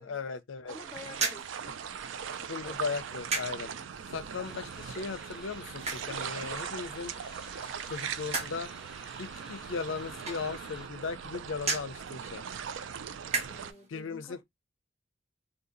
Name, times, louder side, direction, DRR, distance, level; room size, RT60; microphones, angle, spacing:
voice 1, 0.0-0.7 2.5-3.7 4.1-7.1 7.6-8.7 9.2-12.4 13.9-14.4, left 4 dB, 80° left, 0.5 m, -37 dB
voice 2, 0.6-1.5 1.8-1.9 2.4-3.2 3.6-4.5 13.4-14.4, left 2 dB, 15° left, 0.5 m, -51 dB
sound 1, 0.7-13.7, right 7 dB, 70° right, 0.4 m, -40 dB
sound 2, 1.1-13.9, right 3 dB, 35° right, 0.7 m, -40 dB
sound 3, 4.4-10.9, left 1 dB, ahead, 0.9 m, -53 dB
2.7 x 2.7 x 3.8 m
head